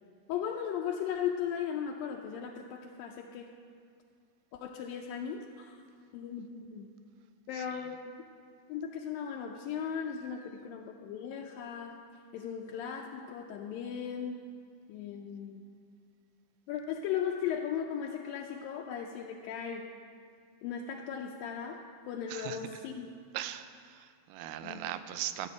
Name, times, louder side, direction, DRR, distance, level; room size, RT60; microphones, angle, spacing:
voice 1, 0.3-3.5 4.5-5.8 6.1-6.9 7.5-8.2 8.7-12.0 12.3-14.4 14.9-15.6 16.7-19.9 20.6-21.8 22.1-23.1 24.6-24.8, left 8 dB, 80° left, 1 dB, 2.3 m, -37 dB
voice 2, 23.3-25.5, right 12 dB, 85° right, 11 dB, 2.5 m, -39 dB
15.0 x 6.7 x 8.3 m, 2.2 s
omnidirectional pair, 4.3 m